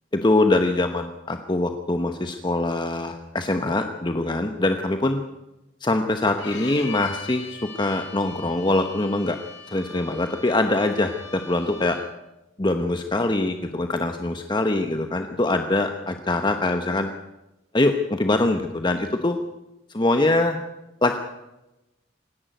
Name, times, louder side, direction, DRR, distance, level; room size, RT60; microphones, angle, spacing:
voice 1, 0.1-5.2 5.8-9.4 9.7-12.0 12.6-17.1 17.7-19.4 19.9-20.6 21.0-21.2, left 2 dB, 25° left, 6 dB, 1.0 m, -23 dB
Bowed string instrument, 6.4-12.2, left 4 dB, 80° left, 6.1 m, -41 dB
26.0 x 11.0 x 9.2 m, 0.97 s
head